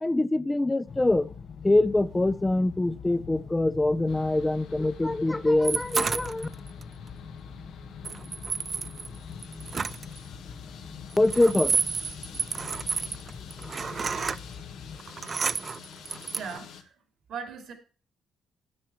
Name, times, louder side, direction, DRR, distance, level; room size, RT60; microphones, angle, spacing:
voice 1, 0.0-1.3 1.6-6.5 11.2-11.7, left 2 dB, 15° left, 0.6 m, -24 dB
sound 1, 0.9-15.0, left 6 dB, 55° left, 0.8 m, -43 dB
sound 2, 4.1-16.8, left 8 dB, 85° left, 1.5 m, -48 dB
sound 3, 5.6-6.8 8.0-10.2 11.1-14.4 14.9-16.6, right 5 dB, 40° right, 0.4 m, -30 dB
voice 2, 16.3-17.0 17.3-17.7, right 6 dB, 70° right, 2.5 m, -38 dB
9.6 x 8.5 x 4.4 m
cardioid pair, 90°, 0 cm